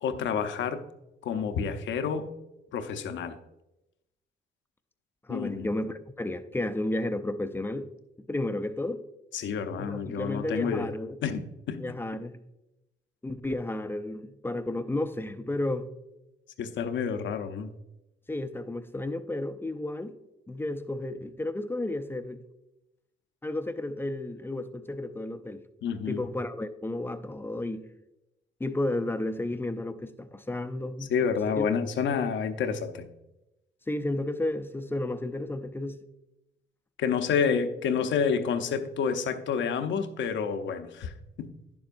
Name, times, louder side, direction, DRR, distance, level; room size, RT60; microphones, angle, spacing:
voice 1, 0.0-0.8 1.2-2.3 2.7-3.4 5.3-5.7 9.3-10.9 11.2-12.0 16.6-17.7 25.8-26.2 31.1-33.1 37.0-41.1 41.4-41.5, left 6 dB, 70° left, 0.7 m, -29 dB
voice 2, 5.3-7.9 8.3-9.0 9.8-11.2 11.8-12.4 13.2-15.9 18.3-20.2 20.5-22.4 23.4-25.6 26.1-27.9 28.6-31.1 31.6-31.7 32.2-32.3 33.9-36.0, left 1 dB, 10° left, 0.5 m, -32 dB
10.5 x 7.1 x 2.6 m
cardioid pair, 90°, 20 cm